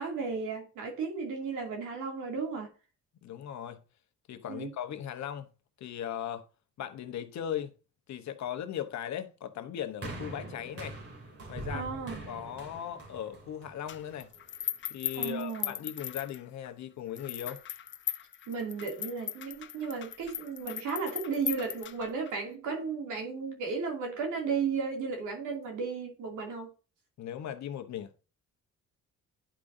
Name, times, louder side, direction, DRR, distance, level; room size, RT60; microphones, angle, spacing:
voice 1, 0.0-2.7 4.5-4.7 11.7-12.2 15.1-15.7 18.5-26.7, right 5 dB, 85° right, 2.6 m, -34 dB
voice 2, 3.2-3.8 4.3-5.5 5.8-6.5 6.8-7.7 8.1-11.0 11.5-12.0 12.3-14.3 14.9-17.6 27.2-28.3, left 10 dB, 65° left, 1.0 m, -38 dB
sound 1, 10.0-14.4 15.2-15.3, right 2 dB, 50° right, 2.9 m, -43 dB
sound 2, 13.9-16.7 17.2-22.3, left 10 dB, 40° left, 0.5 m, -38 dB
11.5 x 4.9 x 2.6 m
cardioid pair, 90°, 30 cm